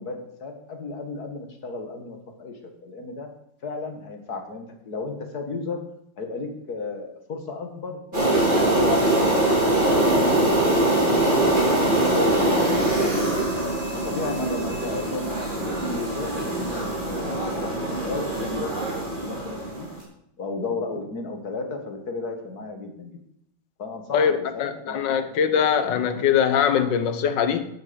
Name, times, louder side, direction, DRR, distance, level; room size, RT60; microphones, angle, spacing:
voice 1, 0.0-3.3 3.6-5.8 6.2-8.9 9.9-12.9 13.2-13.4 14.0-19.9 20.4-23.2 23.8-25.6, left 3 dB, 60° left, 5 dB, 2.2 m, -34 dB
sound 1, 8.1-19.9, right 1 dB, 25° right, 3.4 m, -23 dB
voice 2, 24.1-27.7, left 8 dB, 90° left, 10 dB, 1.7 m, -22 dB
10.5 x 8.1 x 7.0 m, 0.75 s
omnidirectional pair, 1.9 m